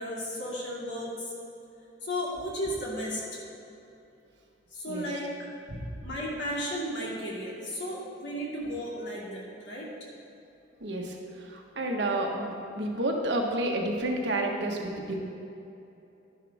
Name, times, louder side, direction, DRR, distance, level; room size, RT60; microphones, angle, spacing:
voice 1, 0.0-1.3 2.0-3.4 4.7-5.5 6.0-9.9, equal, 80° left, -5 dB, 2.6 m, -34 dB
voice 2, 10.8-15.2, right 1 dB, 75° right, 0 dB, 1.4 m, -30 dB
11.0 x 10.5 x 3.6 m, 2.8 s
head